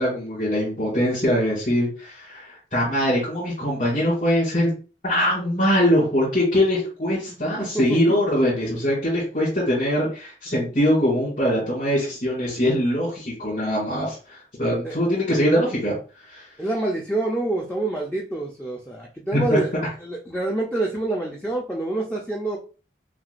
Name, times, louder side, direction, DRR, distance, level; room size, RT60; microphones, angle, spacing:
voice 1, 0.0-4.7 5.0-15.9 16.3-16.5 19.3-19.6, equal, 50° left, -8 dB, 2.2 m, -22 dB
voice 2, 7.4-8.0 14.8-15.0 16.6-19.7 20.0-22.6, right 2 dB, 10° left, -3 dB, 0.5 m, -27 dB
5.9 x 2.5 x 2.5 m, 0.36 s
head